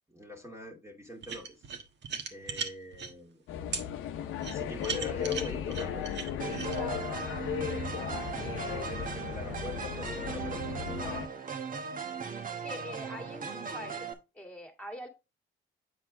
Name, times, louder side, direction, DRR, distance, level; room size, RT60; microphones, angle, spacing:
voice 1, 0.1-1.6 2.3-3.4 4.4-6.1 7.8-8.2 8.6-11.3, left 1 dB, 15° right, 1.8 m, -44 dB
sound 1, 1.2-3.1 3.7-3.8 4.4-6.8, right 6 dB, 60° right, 1.4 m, -37 dB
sound 2, 3.5-11.3, left 9 dB, 90° left, 0.8 m, -36 dB
sound 3, 6.4-14.1, right 6 dB, 45° right, 1.1 m, -38 dB
voice 2, 6.7-7.1 12.6-14.1 14.3-15.1, left 1 dB, 5° left, 1.9 m, -43 dB
8.0 x 4.6 x 3.6 m
cardioid pair, 90°, 20 cm